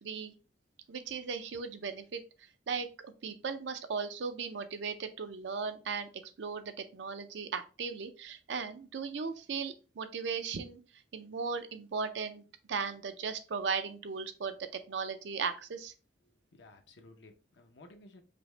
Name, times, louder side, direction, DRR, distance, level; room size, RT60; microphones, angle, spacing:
voice 1, 0.0-0.3 0.9-2.2 2.7-6.1 6.4-10.8 11.1-12.4 12.7-15.9, right 5 dB, 80° right, 9 dB, 0.5 m, -37 dB
voice 2, 16.2-18.2, left 2 dB, 75° left, 5 dB, 0.7 m, -56 dB
5.2 x 2.1 x 3.1 m, 0.35 s
head